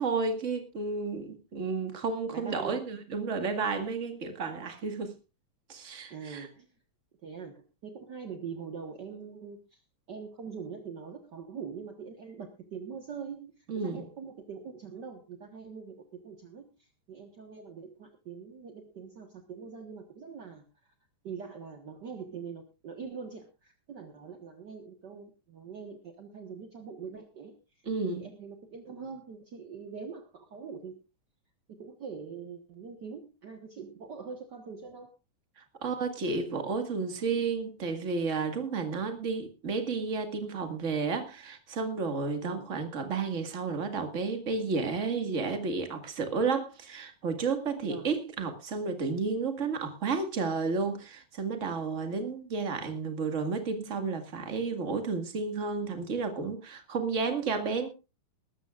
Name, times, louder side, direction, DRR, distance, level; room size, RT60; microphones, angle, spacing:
voice 1, 0.0-5.1 5.7-6.5 13.7-14.0 27.8-28.3 35.8-57.9, right 4 dB, 30° right, 1.4 m, -32 dB
voice 2, 2.3-2.9 6.1-6.7 7.2-9.8 10.1-20.6 21.2-27.6 28.0-31.0 31.7-35.1 42.4-42.7 47.8-48.1, right 6 dB, 55° right, 1.2 m, -43 dB
21.0 x 13.0 x 2.4 m
omnidirectional pair, 4.0 m